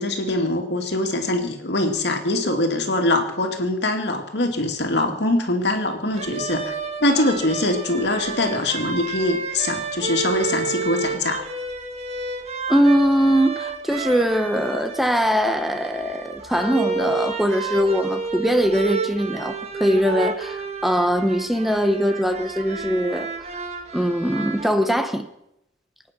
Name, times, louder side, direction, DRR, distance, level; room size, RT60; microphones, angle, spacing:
voice 1, 0.0-6.7 7.0-11.4, left 2 dB, 70° left, 4 dB, 2.5 m, -23 dB
sound 1, 6.1-24.7, right 4 dB, 40° right, 1.9 m, -30 dB
voice 2, 12.7-23.3 23.9-25.2, equal, ahead, 8 dB, 0.8 m, -21 dB
24.0 x 9.6 x 6.0 m, 0.85 s
head